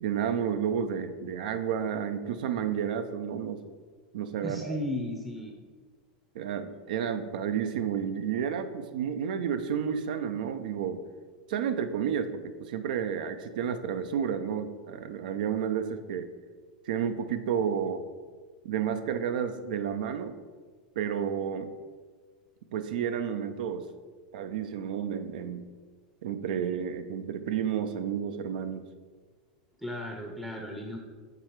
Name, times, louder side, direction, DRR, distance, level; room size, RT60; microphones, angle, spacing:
voice 1, 0.0-3.6 4.1-4.8 6.3-11.0 11.5-16.3 16.9-18.0 18.6-20.3 21.0-21.7 22.7-23.8 24.3-25.7 26.2-28.8, right 8 dB, 75° right, 9 dB, 0.5 m, -31 dB
voice 2, 4.4-5.5 29.8-31.0, left 1 dB, ahead, 0 dB, 0.6 m, -35 dB
6.8 x 3.2 x 4.5 m, 1.5 s
supercardioid pair, 125°, 5 cm